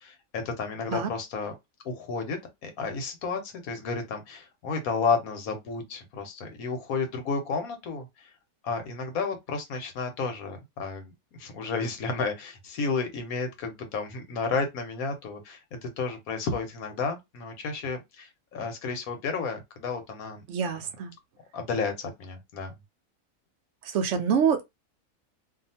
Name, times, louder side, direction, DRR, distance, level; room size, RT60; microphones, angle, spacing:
voice 1, 0.0-1.5 1.8-8.1 8.6-11.1 11.4-20.4 21.5-22.8, left 4 dB, 85° left, 1.3 m, -32 dB
voice 2, 20.5-21.1 23.9-24.6, right 7 dB, 65° right, 0.9 m, -25 dB
2.8 x 2.4 x 2.7 m
omnidirectional pair, 1.5 m